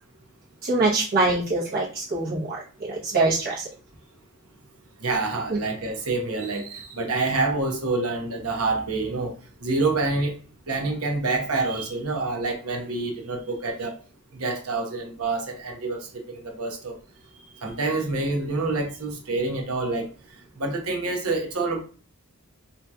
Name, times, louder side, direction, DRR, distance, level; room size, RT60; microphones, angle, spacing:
voice 1, 0.6-3.7 5.5-5.6, right 2 dB, 45° right, 0.9 m, -24 dB
voice 2, 5.0-9.3 9.6-10.3 10.7-13.9 14.4-17.0 17.3-20.1 20.6-21.8, right 3 dB, 80° right, 0.9 m, -27 dB
3.6 x 2.8 x 2.3 m
head